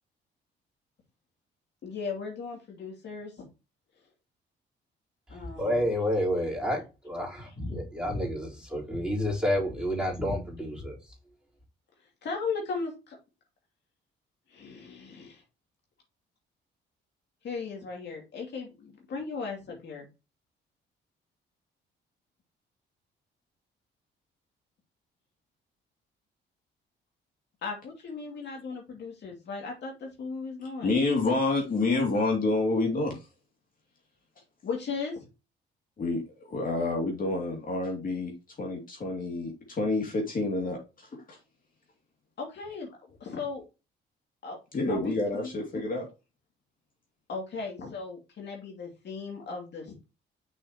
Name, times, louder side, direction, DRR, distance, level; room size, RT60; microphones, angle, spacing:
voice 1, 1.8-3.4 5.3-5.8 12.2-13.2 14.5-15.3 17.4-20.1 27.6-31.0 34.6-35.2 42.4-43.6 44.4-44.6 44.9-45.5 47.3-50.0, left 4 dB, 60° left, 2.7 m, -37 dB
voice 2, 5.3-11.0, equal, 5° right, 4.3 m, -30 dB
voice 3, 30.8-33.2 36.0-38.3 38.6-41.4 44.7-46.1, left 2 dB, 45° left, 2.8 m, -28 dB
6.4 x 5.6 x 3.0 m
cardioid pair, 90°, 20 cm